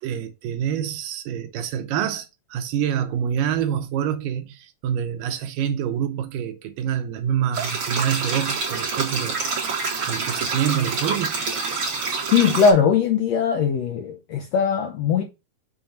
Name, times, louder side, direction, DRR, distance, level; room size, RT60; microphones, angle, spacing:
voice 1, 0.0-11.4, right 9 dB, 90° right, 2.5 m, -27 dB
sound 1, 7.5-12.7, right 4 dB, 40° right, 2.8 m, -27 dB
voice 2, 12.3-15.2, left 6 dB, 75° left, 1.6 m, -20 dB
6.9 x 3.6 x 5.8 m
omnidirectional pair, 3.8 m